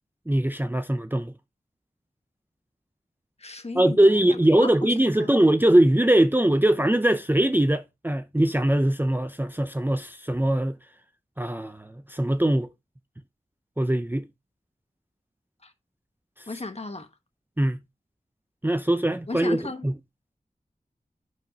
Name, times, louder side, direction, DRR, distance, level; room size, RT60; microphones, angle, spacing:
voice 1, 0.3-1.3 3.7-10.8 11.4-12.7 13.8-14.3 17.6-17.8 18.6-19.6 19.8-20.0, right 1 dB, 15° right, 0.5 m, -21 dB
voice 2, 3.4-4.3 4.6-5.3 15.6-15.7 16.5-17.1 19.3-19.9, left 3 dB, 45° left, 1.4 m, -35 dB
10.5 x 4.7 x 3.0 m
wide cardioid pair, 60°, 15 cm